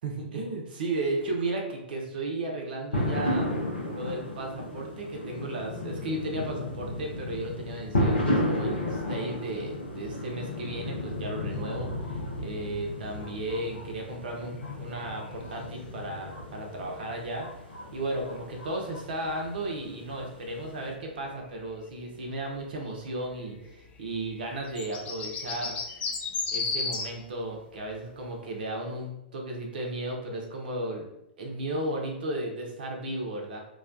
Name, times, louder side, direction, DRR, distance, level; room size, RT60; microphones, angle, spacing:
voice 1, 0.0-3.5 3.9-17.5 17.9-25.8 26.5-31.1 31.4-33.6, right 2 dB, 60° right, 1 dB, 0.6 m, -34 dB
sound 1, 2.9-20.9, left 1 dB, 75° left, 0.7 m, -33 dB
sound 2, 13.1-27.2 27.5-27.6 27.8-28.3 28.6-28.7, left 4 dB, 25° left, 0.3 m, -39 dB
2.3 x 2.2 x 2.4 m, 0.85 s
figure-of-eight pair, 105°, 6 cm